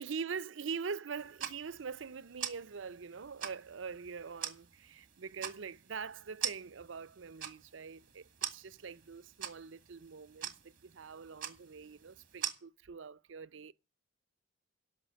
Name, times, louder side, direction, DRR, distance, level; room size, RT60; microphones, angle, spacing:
voice 1, 0.0-13.7, right 5 dB, 85° right, 0.6 m, -43 dB
sound 1, 1.1-12.5, right 9 dB, 50° right, 2.0 m, -44 dB
16.0 x 5.9 x 8.3 m
head